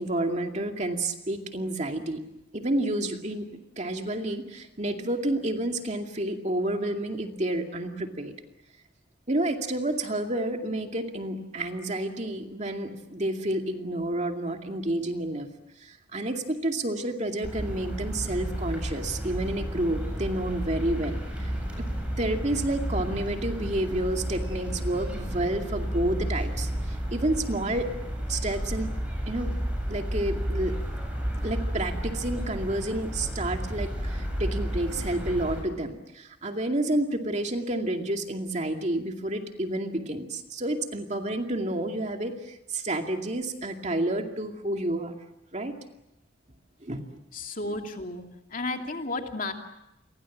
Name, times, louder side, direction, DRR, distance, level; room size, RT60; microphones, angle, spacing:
voice 1, 0.0-2.2 2.5-3.5 3.8-8.3 9.3-15.5 15.8-21.2 21.8-21.9 22.2-27.9 28.3-28.9 29.3-29.6 29.9-30.8 31.4-45.1 45.5-45.7 46.8-47.2, right 1 dB, 35° right, 4 dB, 2.4 m, -30 dB
sound 1, 17.4-35.6, equal, 5° right, 7.7 m, -32 dB
voice 2, 47.3-48.2 48.5-49.5, left 2 dB, 45° left, 4 dB, 2.6 m, -32 dB
29.5 x 24.0 x 7.3 m, 0.87 s
head